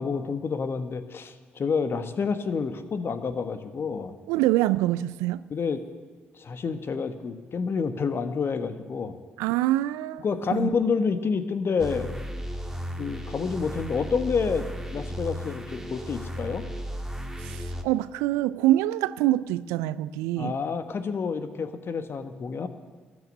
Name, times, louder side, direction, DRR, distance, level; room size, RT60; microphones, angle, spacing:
voice 1, 0.0-4.2 5.5-5.8 6.3-9.2 10.2-12.1 13.0-14.6 14.9-16.6 20.4-22.7, left 5 dB, 50° left, 1.3 m, -28 dB
voice 2, 4.3-5.4 9.4-10.2 10.5-10.7 17.4-20.5, right 15 dB, 75° right, 0.4 m, -25 dB
sound 1, 11.8-17.8, equal, 10° right, 1.9 m, -35 dB
13.5 x 9.8 x 9.9 m
hypercardioid pair, 45°, 5 cm